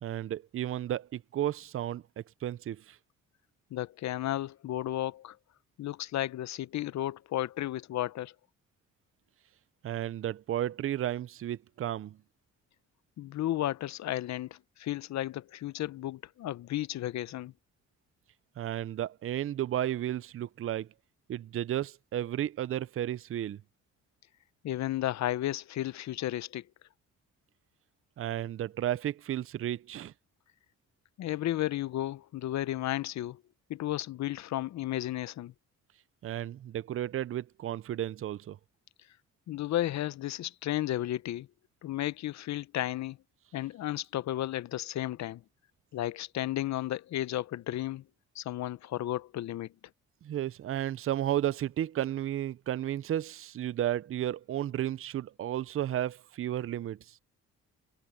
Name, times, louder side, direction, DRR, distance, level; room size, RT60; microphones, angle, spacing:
voice 1, 0.0-3.0 9.8-12.2 18.6-20.9 21.3-23.6 28.2-30.1 36.2-38.6 50.2-57.2, right 12 dB, 45° right, 0.6 m, -33 dB
voice 2, 3.7-5.4 5.8-8.3 13.2-17.5 24.6-26.6 31.2-33.4 33.7-35.5 39.5-41.5 41.8-43.2 43.5-45.4 45.9-48.0 48.4-49.7, left 13 dB, 65° left, 0.7 m, -33 dB
cardioid pair, 90°, 30 cm